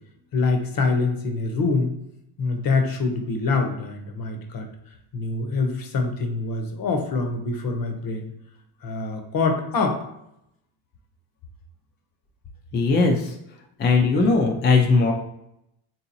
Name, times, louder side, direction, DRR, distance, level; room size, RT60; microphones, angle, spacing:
voice 1, 0.3-1.9 2.4-4.7 5.1-8.3 8.8-10.0, left 3 dB, 45° left, 4 dB, 0.7 m, -25 dB
voice 2, 12.7-13.3 13.8-15.1, left 3 dB, 25° left, 2 dB, 0.3 m, -19 dB
3.6 x 2.7 x 2.7 m, 0.79 s
cardioid pair, 95°, 49 cm